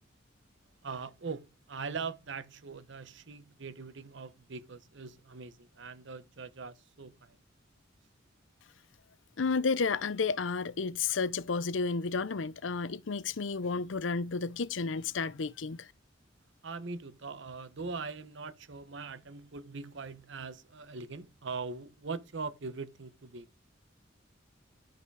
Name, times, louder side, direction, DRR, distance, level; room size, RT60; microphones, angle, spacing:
voice 1, 0.8-7.4 16.6-23.5, right 4 dB, 65° right, 0.9 m, -41 dB
voice 2, 9.4-15.9, left 4 dB, 70° left, 0.6 m, -32 dB
11.5 x 5.8 x 4.7 m
head